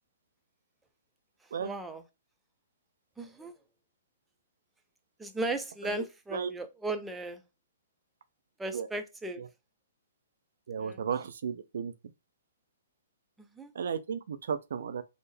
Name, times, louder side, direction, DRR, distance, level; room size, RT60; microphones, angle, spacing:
voice 1, 1.6-2.0 3.2-3.5 5.2-7.4 8.6-9.4 10.8-11.0 13.4-13.7, right 2 dB, 5° right, 0.5 m, -36 dB
voice 2, 10.7-11.9 13.7-15.0, right 7 dB, 65° right, 0.4 m, -34 dB
3.4 x 2.1 x 3.1 m
figure-of-eight pair, 125°, 0 cm